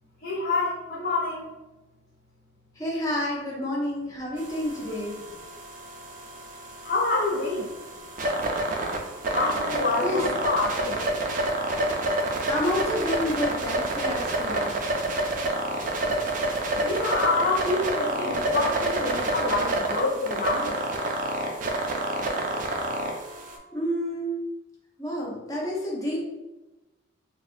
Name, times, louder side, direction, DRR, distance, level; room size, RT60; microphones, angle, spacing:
voice 1, 0.2-1.5 6.8-7.7 9.3-11.0 16.8-20.9, left 3 dB, 45° left, -6 dB, 0.5 m, -27 dB
voice 2, 2.8-5.2 10.0-10.2 12.5-14.7 23.7-24.3 25.0-26.3, left 1 dB, 15° left, -4 dB, 0.7 m, -29 dB
sound 1, 4.4-23.6, right 2 dB, 40° right, 0.4 m, -29 dB
4.1 x 2.2 x 2.6 m, 1.1 s
head